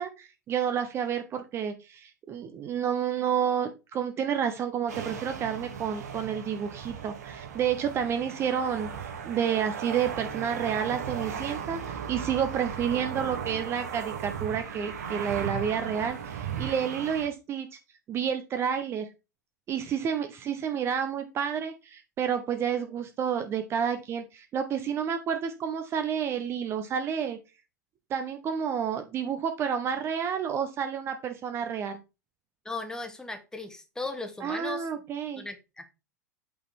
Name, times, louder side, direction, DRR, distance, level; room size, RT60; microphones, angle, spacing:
voice 1, 0.0-17.8 18.1-19.1 19.7-27.4 28.1-32.0 34.4-35.4, right 8 dB, 25° right, 0.8 m, -30 dB
sound 1, 4.9-17.3, right 7 dB, 60° right, 2.7 m, -37 dB
voice 2, 32.6-34.9 35.4-35.9, left 3 dB, 5° left, 1.3 m, -37 dB
8.3 x 4.2 x 4.4 m
figure-of-eight pair, 90°, 10 cm